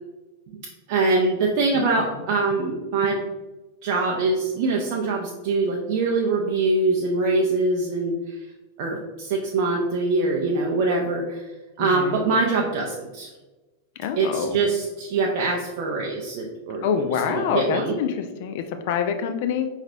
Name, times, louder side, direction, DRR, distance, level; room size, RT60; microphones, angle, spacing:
voice 1, 0.9-3.2 3.8-8.4 8.8-11.5 11.8-13.3 14.2-16.9 17.3-17.9, right 3 dB, 50° right, -1 dB, 0.5 m, -23 dB
voice 2, 1.7-2.1 11.8-12.3 14.0-14.6 16.8-19.7, left 7 dB, 50° left, 7 dB, 0.4 m, -26 dB
4.8 x 3.2 x 2.7 m, 1.2 s
figure-of-eight pair, 90°, 0 cm